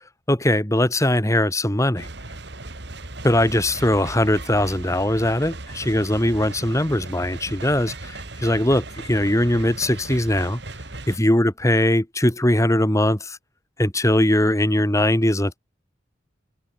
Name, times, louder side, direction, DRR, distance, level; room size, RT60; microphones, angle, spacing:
voice 1, 0.3-2.1 3.2-10.6 11.1-13.4 13.8-15.6, left 1 dB, 15° left, 1.7 m, -20 dB
sound 1, 2.0-11.2, right 2 dB, 60° right, 2.5 m, -37 dB
open air
head